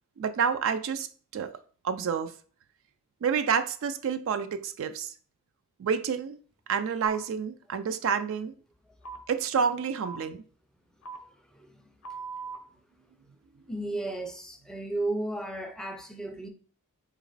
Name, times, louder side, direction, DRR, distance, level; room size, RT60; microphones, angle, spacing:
voice 1, 0.2-1.1 1.3-1.5 1.8-2.3 3.2-5.1 5.8-6.4 6.7-8.5 9.3-10.4, right 6 dB, 60° right, 0.3 m, -28 dB
sound 1, 7.1-7.2 8.0-8.2 9.0-9.2 10.0-10.2 11.0-11.2 12.0-12.6, right 5 dB, 70° left, 0.6 m, -39 dB
voice 2, 11.5-11.9 13.7-16.5, right 2 dB, 5° left, 0.4 m, -34 dB
4.0 x 2.9 x 3.9 m
head